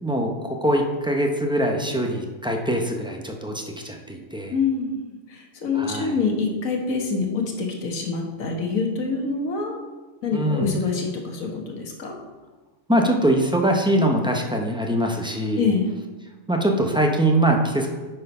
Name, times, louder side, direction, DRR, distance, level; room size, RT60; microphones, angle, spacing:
voice 1, 0.0-4.5 5.7-6.1 10.3-10.7 12.9-15.6 16.5-17.9, right 1 dB, 5° right, 1 dB, 0.6 m, -22 dB
voice 2, 4.5-5.0 5.3-9.8 10.2-12.1 15.5-15.9, left 4 dB, 90° left, 1 dB, 1.6 m, -25 dB
9.3 x 4.5 x 5.4 m, 1.3 s
omnidirectional pair, 1.4 m